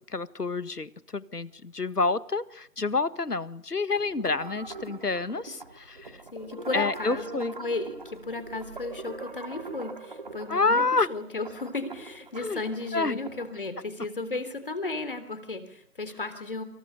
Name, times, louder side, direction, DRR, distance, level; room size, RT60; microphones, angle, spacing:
voice 1, 0.1-6.2 6.7-7.5 10.5-11.1 12.4-12.6 12.9-13.2, left 3 dB, 75° left, 15 dB, 1.8 m, -28 dB
sound 1, 4.0-13.5, right 3 dB, 30° right, 3.3 m, -42 dB
voice 2, 6.3-10.8 11.1-16.6, left 3 dB, 35° left, 11 dB, 3.4 m, -34 dB
28.5 x 27.5 x 6.8 m, 0.65 s
figure-of-eight pair, 170°, 46 cm